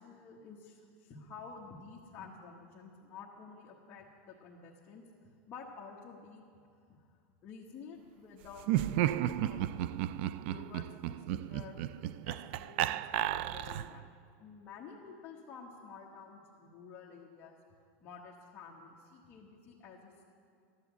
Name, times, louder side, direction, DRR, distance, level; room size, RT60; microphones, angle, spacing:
voice 1, 0.0-5.1 5.5-6.4 6.9-7.1 7.4-9.6 10.1-11.8 12.2-14.1 14.4-17.6 18.0-20.2, left 5 dB, 25° left, -4 dB, 1.3 m, -51 dB
Laughter, 8.6-14.0, right 13 dB, 50° right, 0.3 m, -33 dB
14.5 x 11.0 x 8.0 m, 2.3 s
supercardioid pair, 165°, 8 cm